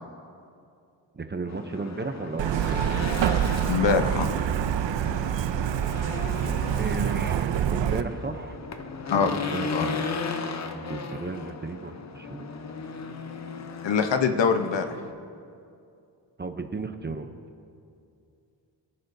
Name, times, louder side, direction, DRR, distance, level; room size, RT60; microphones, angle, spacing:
voice 1, 1.1-2.8 6.4-8.6 9.1-10.1 10.7-12.5 16.4-17.3, right 3 dB, 25° right, 7 dB, 0.6 m, -34 dB
Race car auto racing / Engine, 1.5-15.1, left 5 dB, 40° left, 0.7 m, -36 dB
Truck, 2.4-8.0, right 10 dB, 80° right, 0.6 m, -26 dB
voice 2, 3.7-4.3 9.1-9.3 9.7-9.9 13.8-15.0, left 6 dB, 75° left, 7 dB, 0.9 m, -23 dB
25.0 x 11.0 x 2.7 m, 2.5 s
wide cardioid pair, 155°, 43 cm